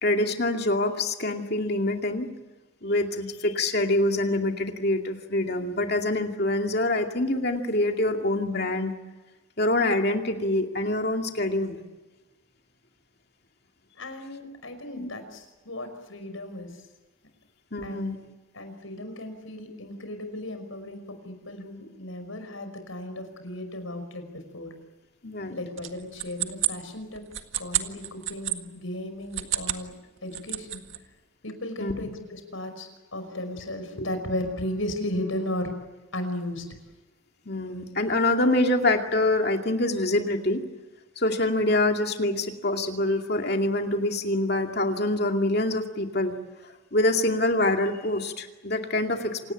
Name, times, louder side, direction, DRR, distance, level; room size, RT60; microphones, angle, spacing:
voice 1, 0.0-2.3 2.8-8.9 9.6-11.8 15.0-15.1 17.7-18.2 25.2-25.6 31.8-32.1 37.5-40.6 41.2-46.3 46.9-49.5, left 1 dB, 50° left, 3 dB, 2.4 m, -25 dB
voice 2, 14.0-16.8 17.8-18.2 18.5-24.3 24.5-24.7 25.5-27.2 27.6-29.9 30.2-30.8 31.4-35.8 36.1-36.7, left 1 dB, 80° left, 8 dB, 5.5 m, -35 dB
sound 1, 25.8-28.6 29.2-29.9 30.2-31.0, right 13 dB, 75° right, 1.8 m, -30 dB
28.0 x 18.0 x 9.0 m, 1.2 s
head